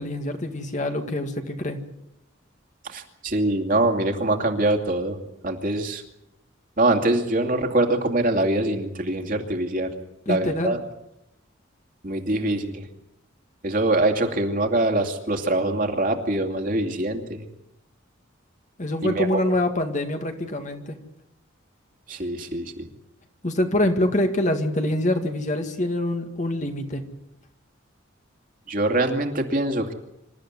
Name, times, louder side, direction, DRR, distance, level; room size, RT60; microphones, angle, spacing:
voice 1, 0.0-1.8 10.3-10.8 18.8-21.0 23.4-27.0, left 1 dB, 35° left, 5 dB, 2.0 m, -25 dB
voice 2, 2.8-5.2 5.4-6.0 6.8-9.9 10.3-10.8 12.0-12.8 13.6-17.4 19.0-19.4 22.1-22.9 28.7-29.9, right 2 dB, 45° right, 4 dB, 2.6 m, -24 dB
26.5 x 13.5 x 9.7 m, 0.85 s
head